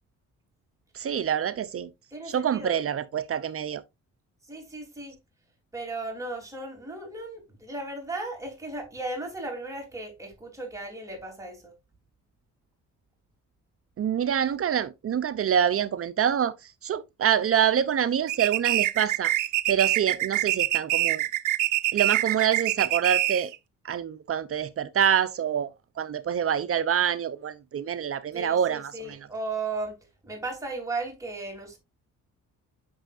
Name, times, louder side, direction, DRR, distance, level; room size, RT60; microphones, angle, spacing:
voice 1, 0.9-1.9 2.3-3.8 14.0-19.3 19.7-21.2 21.9-23.5 23.8-29.2, right 8 dB, 50° right, 0.7 m, -26 dB
voice 2, 2.1-2.8 4.5-5.2 5.7-11.7 28.3-30.0 30.2-31.8, right 2 dB, 10° right, 3.5 m, -36 dB
sound 1, 18.3-23.6, right 16 dB, 85° right, 0.7 m, -25 dB
8.8 x 6.3 x 2.6 m
cardioid pair, 90°, 30 cm